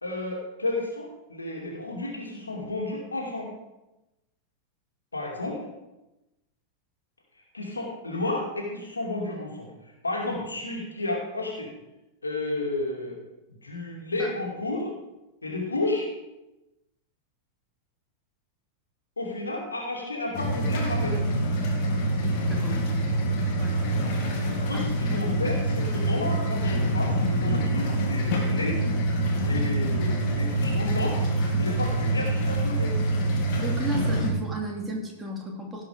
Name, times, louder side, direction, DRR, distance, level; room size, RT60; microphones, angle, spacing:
voice 1, 0.0-3.5 5.1-5.6 7.5-11.7 12.2-13.2 13.6-14.9 15.4-16.1 19.2-21.2 24.6-28.8 29.4-31.2 31.6-33.0, left 2 dB, 80° left, -2 dB, 2.5 m, -32 dB
sound 1, 20.3-34.3, right 1 dB, 45° left, 2.5 m, -25 dB
voice 2, 22.5-23.0 23.6-23.8 24.7-24.8 33.5-35.9, right 1 dB, 15° right, -1 dB, 2.9 m, -34 dB
17.0 x 5.7 x 5.0 m, 0.98 s
figure-of-eight pair, 90°, 0 cm